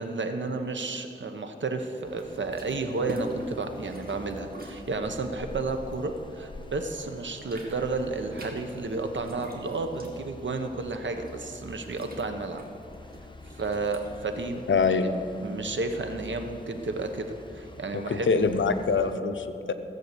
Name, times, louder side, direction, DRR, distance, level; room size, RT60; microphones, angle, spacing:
voice 1, 0.0-12.6 13.6-17.2 17.5-18.3, right 3 dB, 80° right, 6 dB, 1.1 m, -32 dB
sound 1, 2.0-19.2, left 1 dB, 25° left, 0.9 m, -47 dB
sound 2, 2.2-6.7 7.0-15.1, equal, 50° right, 1.9 m, -45 dB
voice 2, 14.7-15.1 17.9-19.7, left 4 dB, 85° left, 8 dB, 0.8 m, -24 dB
15.0 x 7.8 x 6.8 m, 2.6 s
wide cardioid pair, 80°, 19 cm